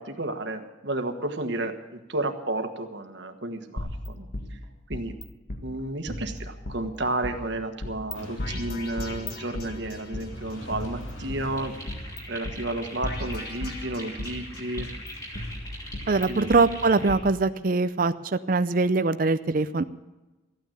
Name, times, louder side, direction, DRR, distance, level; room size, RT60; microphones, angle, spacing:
voice 1, 0.0-4.6 4.9-5.1 5.6-11.7 12.3-14.9 16.3-16.5, right 2 dB, 60° right, 6 dB, 1.4 m, -32 dB
sound 1, 3.8-5.2 5.5-5.6 6.1-7.3 7.8-8.1 8.4-10.2 10.7-12.2 12.4-12.6 13.0-14.4 14.8-16.6 17.1-17.2, left 1 dB, 50° left, 1.8 m, -36 dB
sound 2, 8.1-16.9, equal, 80° left, 2.8 m, -45 dB
sound 3, 11.5-17.2, equal, 15° left, 2.8 m, -42 dB
voice 2, 16.1-19.8, right 3 dB, 45° right, 11 dB, 0.5 m, -23 dB
14.0 x 9.2 x 8.5 m, 1.1 s
head